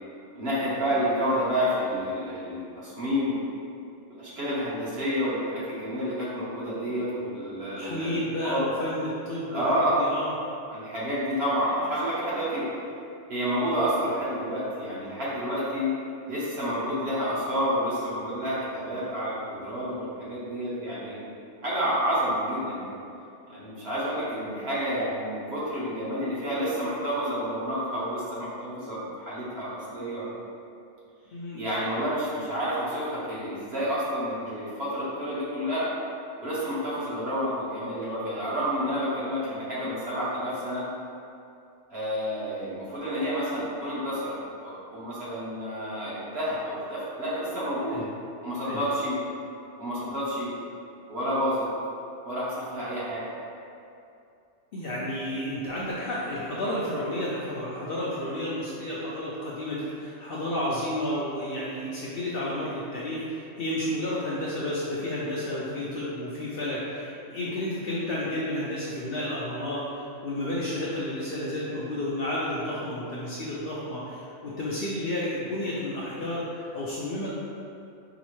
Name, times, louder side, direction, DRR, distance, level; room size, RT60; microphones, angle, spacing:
voice 1, 0.4-3.3 4.2-8.7 9.5-9.9 10.7-12.6 13.3-15.9 16.3-21.3 21.6-22.9 23.5-30.2 31.6-35.9 36.4-40.8 41.9-44.4 44.6-48.0 48.4-49.2 49.8-50.5 51.1-51.7 52.2-53.3, equal, 55° right, -9 dB, 1.2 m, -29 dB
voice 2, 7.8-10.3 31.3-31.6 47.9-48.1 48.6-48.9 54.7-69.9 70.2-77.4, left 1 dB, 60° left, -7 dB, 0.6 m, -31 dB
4.8 x 2.0 x 3.0 m, 2.6 s
omnidirectional pair, 1.3 m